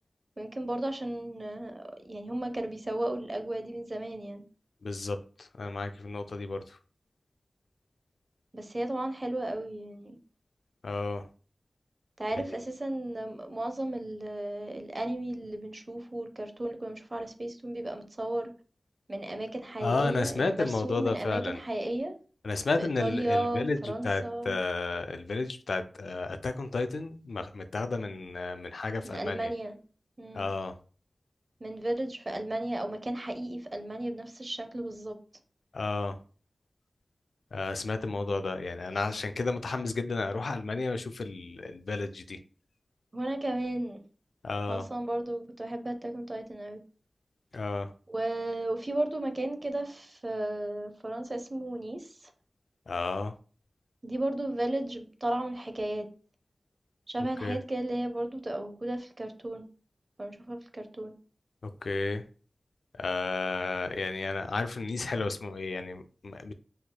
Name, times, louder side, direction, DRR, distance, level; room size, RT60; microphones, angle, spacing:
voice 1, 0.4-4.4 8.5-10.2 12.2-18.5 19.1-22.1 22.8-24.5 29.0-29.8 30.2-30.5 31.6-35.2 43.1-44.0 44.7-46.8 48.1-52.1 54.0-56.1 57.1-59.6 60.2-61.1, right 1 dB, 45° right, 0.6 m, -34 dB
voice 2, 4.8-6.8 10.8-11.3 12.4-12.6 19.8-21.6 22.4-29.5 30.3-30.8 35.7-36.2 37.5-42.4 44.4-44.9 47.5-47.9 52.9-53.4 57.4-57.6 61.6-62.2 62.9-66.5, left 3 dB, 85° left, 0.3 m, -32 dB
4.2 x 2.9 x 2.2 m
cardioid pair, 45°, 0 cm